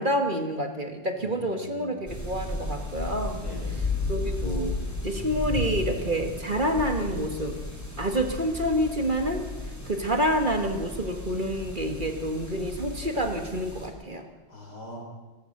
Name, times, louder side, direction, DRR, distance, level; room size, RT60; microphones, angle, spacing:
voice 1, 0.0-3.4 4.1-4.7 5.0-7.6 8.0-9.4 9.9-14.3, equal, 25° right, 5 dB, 1.6 m, -28 dB
voice 2, 1.2-2.2 3.3-3.8 14.5-15.0, left 2 dB, 60° left, -1 dB, 4.9 m, -42 dB
sound 1, 2.1-13.9, left 2 dB, 10° left, 3.4 m, -34 dB
28.0 x 15.0 x 6.7 m, 1.2 s
omnidirectional pair, 2.0 m